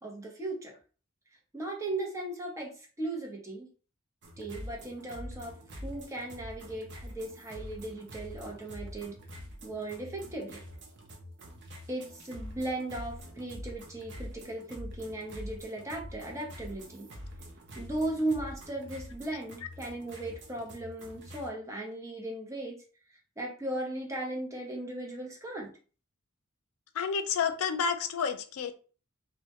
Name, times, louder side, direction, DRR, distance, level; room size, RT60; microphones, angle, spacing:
voice 1, 0.0-0.8 1.5-3.7 4.4-9.2 9.6-10.6 11.9-17.1 17.8-22.8 23.4-25.8, right 2 dB, 15° right, -1 dB, 0.6 m, -37 dB
sound 1, 4.2-21.5, equal, 55° right, 0.5 m, -45 dB
voice 2, 26.9-28.7, left 6 dB, 80° left, 8 dB, 0.4 m, -30 dB
2.1 x 2.1 x 2.8 m, 0.38 s
head